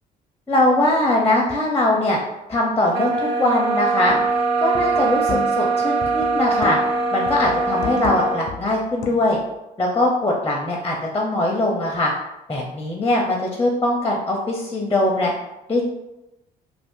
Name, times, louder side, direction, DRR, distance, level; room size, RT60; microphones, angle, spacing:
voice 1, 0.5-2.2 2.5-4.2 4.6-6.8 7.1-9.4 9.8-12.1 12.5-15.3 15.7-15.9, left 1 dB, 15° left, -1 dB, 0.5 m, -21 dB
sound 1, 2.9-8.5, right 4 dB, 60° right, 0.6 m, -22 dB
sound 2, 4.1-4.4 4.7-5.7 6.0-7.0 7.3-9.5, left 7 dB, 70° left, 0.4 m, -33 dB
2.5 x 2.4 x 3.5 m, 0.94 s
cardioid pair, 110°, 17 cm